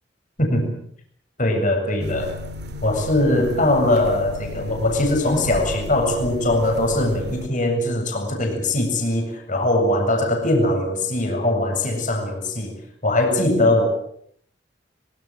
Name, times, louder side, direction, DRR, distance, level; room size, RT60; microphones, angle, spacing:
voice 1, 0.4-0.8 1.4-2.3 2.8-12.8 13.0-13.9, left 1 dB, 45° left, 3 dB, 7.5 m, -21 dB
sound 1, 2.0-7.5, left 1 dB, 60° right, 2.7 m, -34 dB
25.0 x 24.0 x 7.6 m, 0.67 s
head